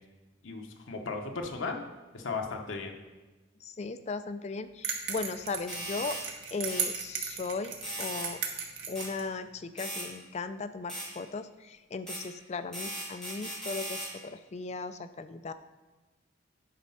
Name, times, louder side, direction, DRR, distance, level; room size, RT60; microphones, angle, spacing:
voice 1, 0.4-1.8 2.1-3.0, left 4 dB, 80° left, 2 dB, 0.9 m, -36 dB
voice 2, 3.6-6.2 6.5-8.4 8.9-15.5, left 4 dB, 35° left, 11 dB, 0.3 m, -37 dB
sound 1, 4.8-9.3, right 6 dB, 85° right, 1.2 m, -36 dB
sound 2, 5.7-6.2 6.7-6.9 7.8-8.3 9.0-9.1 9.8-10.1 10.9-11.1 12.1-12.2 12.7-14.1, right 1 dB, 5° left, 2.2 m, -37 dB
9.4 x 4.1 x 5.6 m, 1.2 s
head